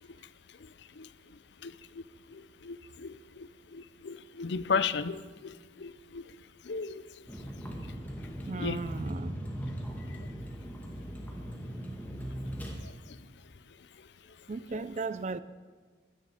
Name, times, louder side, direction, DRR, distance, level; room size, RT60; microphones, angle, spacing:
voice 1, 1.6-2.0 2.3-6.3 6.6-7.0 8.6-8.8 10.2-10.3 12.8-13.2 14.7-14.8, left 5 dB, 65° left, 0.5 m, -36 dB
Vehicle, 7.3-12.7, equal, 10° left, 1.9 m, -39 dB
voice 2, 8.5-9.4 14.5-15.4, right 3 dB, 40° right, 0.4 m, -35 dB
16.0 x 13.0 x 4.9 m
head